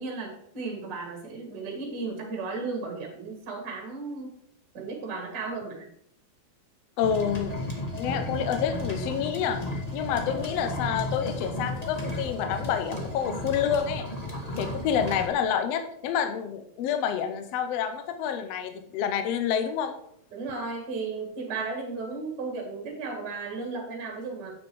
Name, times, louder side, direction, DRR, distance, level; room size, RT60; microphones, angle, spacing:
voice 1, 0.0-4.3 4.7-5.9 20.3-24.5, right 4 dB, 40° right, 1 dB, 2.2 m, -35 dB
voice 2, 7.0-7.5 8.0-9.6 9.9-14.1 14.6-20.0, left 8 dB, 75° left, 8 dB, 1.6 m, -28 dB
sound 1, 7.0-15.3, left 1 dB, 25° left, 0.9 m, -34 dB
8.5 x 6.3 x 4.6 m, 0.73 s
omnidirectional pair, 3.5 m